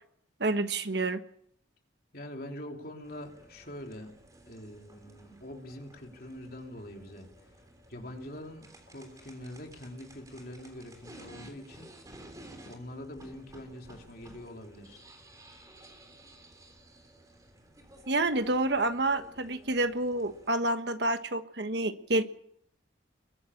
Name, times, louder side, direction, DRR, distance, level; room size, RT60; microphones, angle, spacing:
voice 1, 0.4-1.2 18.1-22.2, right 2 dB, 60° right, 9 dB, 1.4 m, -28 dB
voice 2, 2.1-4.1 4.5-7.3 7.9-11.9 12.7-15.0, left 1 dB, 50° left, 2 dB, 3.2 m, -44 dB
sound 1, 3.0-20.5, right 1 dB, 20° right, 3.4 m, -54 dB
22.5 x 12.0 x 9.9 m, 0.69 s
head